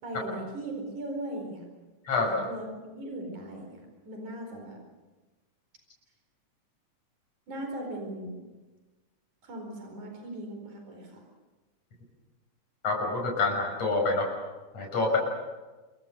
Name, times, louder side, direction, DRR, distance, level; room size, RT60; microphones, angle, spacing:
voice 1, 0.0-1.6 2.2-4.8 7.5-8.4 9.4-11.2, right 1 dB, 80° right, 2 dB, 6.0 m, -38 dB
voice 2, 12.8-14.3 14.7-15.2, left 3 dB, 55° left, -1 dB, 7.2 m, -26 dB
27.5 x 23.5 x 6.6 m, 1.2 s
omnidirectional pair, 3.4 m